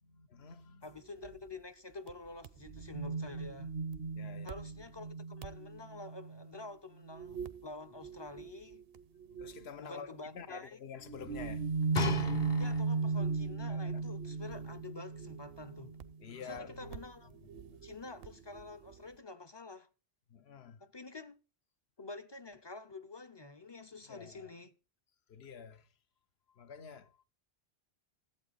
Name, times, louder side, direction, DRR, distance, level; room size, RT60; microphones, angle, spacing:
voice 1, 0.1-0.9 3.9-4.5 9.4-11.7 13.7-14.1 16.2-17.0 17.4-17.8 20.3-20.8 24.0-24.5 25.3-25.9 26.5-27.3, left 7 dB, 80° left, 1.1 m, -49 dB
voice 2, 0.8-3.7 4.4-8.8 9.8-10.8 12.6-16.0 16.4-17.3 17.8-19.9 20.8-21.4 22.0-24.7, left 3 dB, 35° left, 0.5 m, -48 dB
sound 1, 1.2-1.4 2.1-2.2 2.4-6.6 7.0-7.7 8.0-9.7 11.1-19.0, right 4 dB, 70° right, 0.9 m, -38 dB
sound 2, 11.9-13.2 14.0-14.1, left 4 dB, 50° left, 1.0 m, -36 dB
14.5 x 8.1 x 4.0 m
omnidirectional pair, 1.1 m